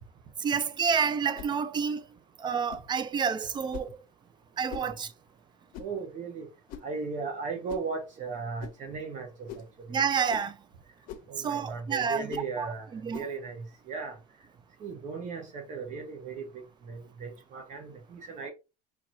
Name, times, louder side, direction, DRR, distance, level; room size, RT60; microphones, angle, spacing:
voice 1, 0.4-2.0 2.4-4.0 4.6-5.1 9.9-10.6 11.4-13.2, right 6 dB, 30° right, 0.5 m, -29 dB
sound 1, 1.3-1.6 2.7-2.9 3.7-4.0 4.7-4.9 5.7-6.0 6.7-7.0 7.7-7.9 8.6-8.8 9.5-9.7 10.3-10.5 11.1-11.3 12.3-12.5 13.1-13.3, left 8 dB, 60° left, 0.9 m, -43 dB
voice 2, 5.8-6.5 6.8-10.0 11.3-14.2 14.8-18.5, right 4 dB, 50° right, 1.3 m, -37 dB
4.7 x 3.7 x 2.8 m
cardioid pair, 115°, 16 cm